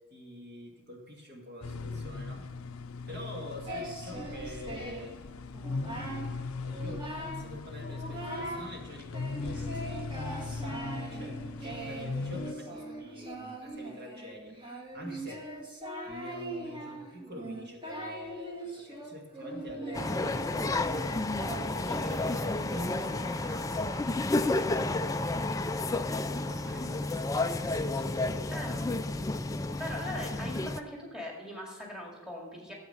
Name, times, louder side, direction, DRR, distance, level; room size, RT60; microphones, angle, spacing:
voice 1, 0.1-2.5 3.1-5.1 6.5-9.7 10.1-14.6 14.9-15.5 16.0-20.8 21.4-25.0 26.1-29.1, left 1 dB, 45° right, 0 dB, 2.0 m, -46 dB
sound 1, 1.6-12.5, left 3 dB, 80° left, 0.6 m, -39 dB
Singing, 3.7-5.2 5.5-6.3 6.7-7.5 7.8-8.7 9.1-23.6, right 1 dB, 20° right, 1.6 m, -41 dB
sound 2, 19.9-30.8, left 2 dB, 15° left, 0.4 m, -31 dB
voice 2, 28.2-28.7 29.8-32.7, left 1 dB, 5° right, -2 dB, 2.2 m, -40 dB
13.5 x 8.2 x 5.6 m, 1.3 s
head